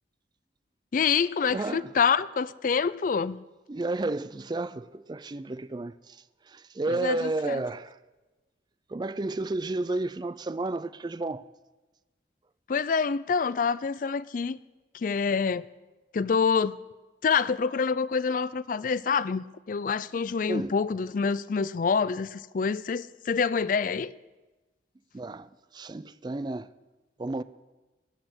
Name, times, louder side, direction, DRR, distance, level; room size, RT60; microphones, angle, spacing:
voice 1, 0.9-3.4 6.9-7.6 12.7-14.6 14.9-15.7 16.1-16.8 17.2-24.1, left 5 dB, 45° left, 0.4 m, -26 dB
voice 2, 1.5-1.9 3.7-6.2 6.5-8.0 8.9-11.4 20.5-20.8 25.1-26.7 27.2-27.4, right 2 dB, 25° right, 0.4 m, -32 dB
19.0 x 8.4 x 6.1 m
head